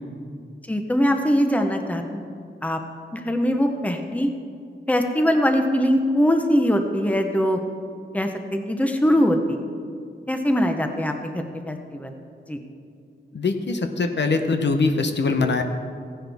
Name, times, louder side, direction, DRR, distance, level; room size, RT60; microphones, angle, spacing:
voice 1, 0.7-2.2 2.6-2.8 3.1-4.3 4.9-7.6 8.1-9.6 10.3-12.1 12.5-12.6, equal, 5° left, 5 dB, 0.9 m, -22 dB
voice 2, 13.3-15.6, left 3 dB, 65° left, 6 dB, 0.8 m, -22 dB
15.0 x 10.0 x 3.5 m, 2.3 s
wide cardioid pair, 105°, 20 cm